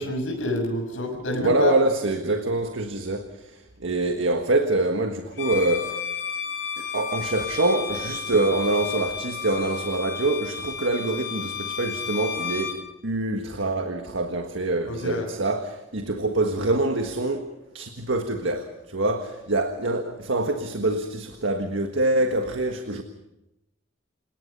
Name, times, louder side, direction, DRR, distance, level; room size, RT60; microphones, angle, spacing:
voice 1, 0.0-1.7 14.9-15.3, left 1 dB, 80° left, 2 dB, 6.6 m, -27 dB
voice 2, 1.4-6.1 6.8-23.0, right 2 dB, 80° right, 6 dB, 1.6 m, -25 dB
Bowed string instrument, 5.3-12.8, left 7 dB, 65° left, 7.8 m, -32 dB
29.0 x 18.5 x 5.5 m, 0.93 s
head